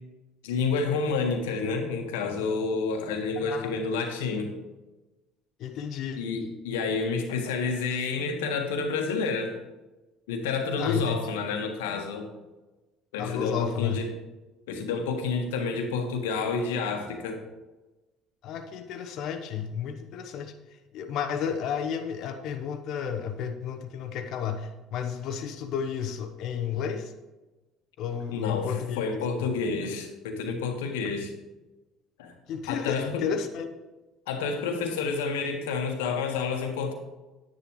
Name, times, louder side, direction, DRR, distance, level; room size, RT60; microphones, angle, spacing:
voice 1, 0.4-4.5 6.2-9.6 10.3-12.3 13.1-14.1 14.7-17.4 28.3-31.3 32.2-32.3 32.7-33.2 34.3-36.9, left 4 dB, 85° left, 4 dB, 1.4 m, -29 dB
voice 2, 3.4-3.7 5.6-6.2 10.8-11.3 13.2-14.0 18.4-27.1 28.0-29.0 29.4-29.5 32.5-33.7, left 7 dB, 65° left, 7 dB, 0.9 m, -32 dB
10.0 x 10.0 x 3.1 m, 1.1 s
hypercardioid pair, 70°, 0 cm